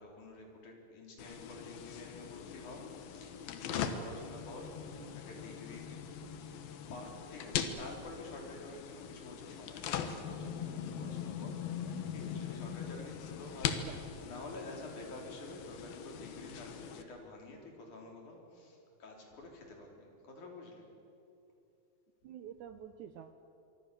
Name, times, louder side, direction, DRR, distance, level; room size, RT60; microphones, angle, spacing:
voice 1, 0.0-6.6 6.9-20.9, left 2 dB, 60° left, 0 dB, 5.0 m, -49 dB
sound 1, 1.2-17.0, left 8 dB, 85° left, 3.1 m, -41 dB
voice 2, 22.2-23.3, right 10 dB, 75° right, 9 dB, 1.9 m, -48 dB
25.5 x 24.0 x 6.9 m, 2.8 s
omnidirectional pair, 4.1 m